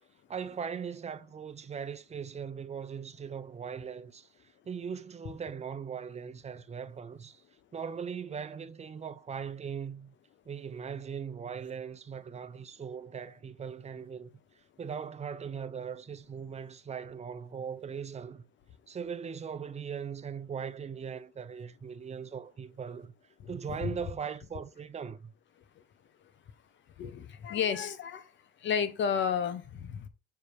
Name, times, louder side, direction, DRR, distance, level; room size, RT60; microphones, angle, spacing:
voice 1, 0.3-7.4 7.7-10.2 10.5-14.3 14.8-18.4 18.9-23.1 23.5-25.3, right 7 dB, 35° right, 0.7 m, -39 dB
voice 2, 23.4-23.8 27.0-28.3 28.6-30.1, left 7 dB, 65° left, 0.9 m, -32 dB
6.5 x 3.5 x 4.6 m
cardioid pair, 90°, 20 cm